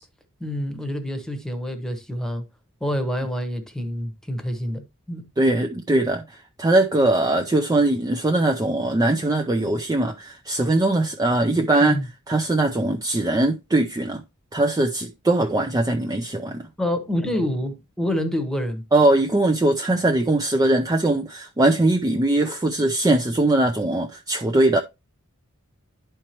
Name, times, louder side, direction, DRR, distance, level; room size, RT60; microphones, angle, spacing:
voice 1, 0.4-2.5 2.8-5.3 11.8-12.1 16.8-18.8, left 1 dB, 5° left, 1.0 m, -27 dB
voice 2, 5.4-12.0 12.3-14.2 14.5-16.6 18.9-24.8, right 2 dB, 15° right, 0.4 m, -21 dB
11.0 x 4.5 x 2.9 m
head